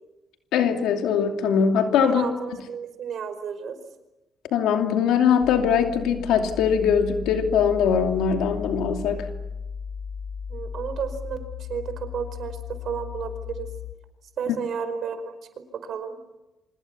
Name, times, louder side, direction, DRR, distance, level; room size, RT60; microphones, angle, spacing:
voice 1, 0.5-2.2 4.5-9.3 14.5-14.6, left 7 dB, 90° left, 4 dB, 2.7 m, -21 dB
voice 2, 2.0-3.8 10.5-13.7 14.4-15.3 15.8-16.2, right 7 dB, 65° right, 9 dB, 5.0 m, -32 dB
sound 1, 5.4-13.9, left 7 dB, 65° left, 2.7 m, -36 dB
28.0 x 25.5 x 7.1 m, 1.0 s
cardioid pair, 90°, 0 cm